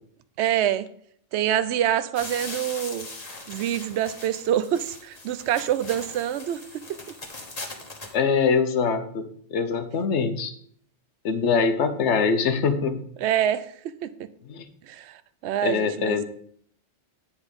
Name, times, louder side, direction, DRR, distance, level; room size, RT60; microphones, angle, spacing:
voice 1, 0.4-0.9 1.3-3.1 3.5-7.0 13.2-14.1 14.9-16.2, right 11 dB, 75° right, 14 dB, 0.9 m, -26 dB
sound 1, 2.1-8.1, left 2 dB, 35° left, 1.4 m, -40 dB
voice 2, 8.1-10.5 11.2-13.0 14.5-14.7 15.6-16.2, left 5 dB, 80° left, 9 dB, 1.1 m, -23 dB
9.9 x 4.4 x 5.2 m, 0.62 s
omnidirectional pair, 1.2 m